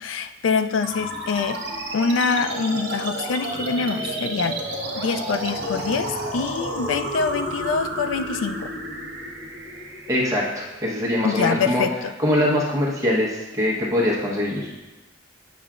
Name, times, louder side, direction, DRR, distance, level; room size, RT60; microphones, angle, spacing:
voice 1, 0.0-1.6 1.9-4.6 5.0-8.7 11.2-12.1, left 5 dB, 80° left, 10 dB, 0.4 m, -25 dB
sound 1, 0.8-11.8, right 1 dB, 55° right, 1.3 m, -31 dB
voice 2, 10.1-11.8 12.2-14.7, left 1 dB, 15° right, -5 dB, 1.1 m, -23 dB
8.0 x 5.6 x 2.5 m, 1.1 s
head